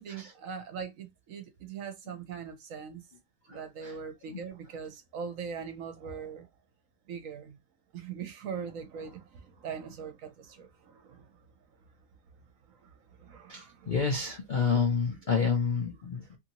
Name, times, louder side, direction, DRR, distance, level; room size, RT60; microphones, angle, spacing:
voice 1, 0.0-3.0 3.5-6.5 7.1-7.6 7.9-11.5 11.7-11.8 12.7-13.9, right 6 dB, 65° right, 0.9 m, -41 dB
voice 2, 3.4-4.0 4.3-4.4 13.5-16.4, left 5 dB, 85° left, 0.4 m, -29 dB
2.8 x 2.6 x 2.8 m
omnidirectional pair, 1.7 m